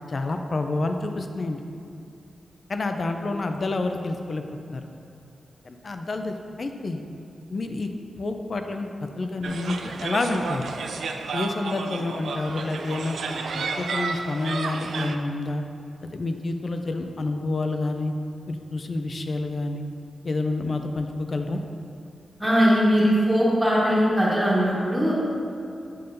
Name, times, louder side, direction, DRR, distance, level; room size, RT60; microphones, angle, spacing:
voice 1, 0.1-1.6 2.7-4.4 4.7-4.8 5.6-7.0 7.5-7.9 8.2-8.9 9.2-10.7 11.3-13.2 13.5-15.6 16.1-18.1 18.5-19.8 20.2-21.6, left 2 dB, 45° left, 6 dB, 0.4 m, -28 dB
sound 1, 9.4-15.2, right 4 dB, 85° right, 0.3 m, -32 dB
voice 2, 22.4-25.1, equal, 5° right, -7 dB, 1.3 m, -20 dB
7.6 x 5.4 x 2.6 m, 2.5 s
wide cardioid pair, 135°, 0 cm